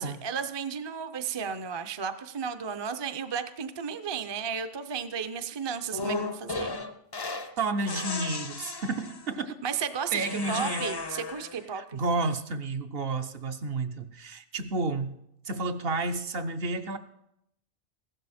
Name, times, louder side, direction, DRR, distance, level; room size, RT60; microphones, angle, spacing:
voice 1, 0.0-6.7 9.6-12.0, right 7 dB, 30° right, 9 dB, 0.5 m, -34 dB
sound 1, 5.9-7.5 7.9-9.3 10.2-11.6, left 3 dB, 30° left, 0.5 m, -35 dB
voice 2, 7.6-9.6 10.1-10.9 11.7-15.2 15.4-17.0, right 3 dB, 60° right, 8 dB, 0.9 m, -31 dB
15.0 x 12.0 x 4.2 m, 0.80 s
omnidirectional pair, 1.2 m